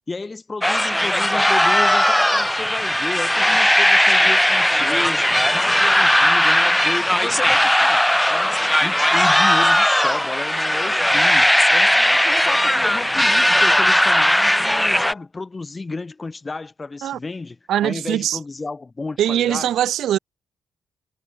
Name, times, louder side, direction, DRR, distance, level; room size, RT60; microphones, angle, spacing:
voice 1, 0.1-5.2 5.5-19.7, left 3 dB, 30° left, 7.1 m, -32 dB
sound 1, 0.6-15.1, left 1 dB, 5° left, 1.5 m, -17 dB
voice 2, 17.7-18.4 19.2-20.2, right 11 dB, 75° right, 3.5 m, -21 dB
supercardioid pair, 50°, 0 cm